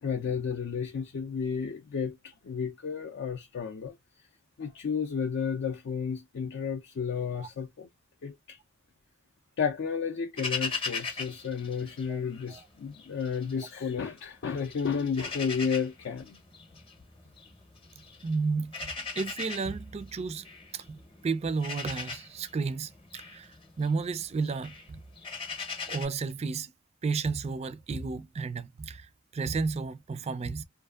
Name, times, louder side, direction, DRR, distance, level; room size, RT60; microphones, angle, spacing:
voice 1, 0.0-4.0 4.6-7.9 8.2-8.6 9.6-16.4, left 6 dB, 60° left, 0.4 m, -32 dB
sound 1, 10.4-12.6 12.9-14.2 14.6-26.1, left 4 dB, 25° left, 0.7 m, -39 dB
voice 2, 18.2-20.5 20.7-25.0 25.9-26.7 27.0-30.6, right 4 dB, 30° right, 0.3 m, -32 dB
2.6 x 2.4 x 2.3 m
head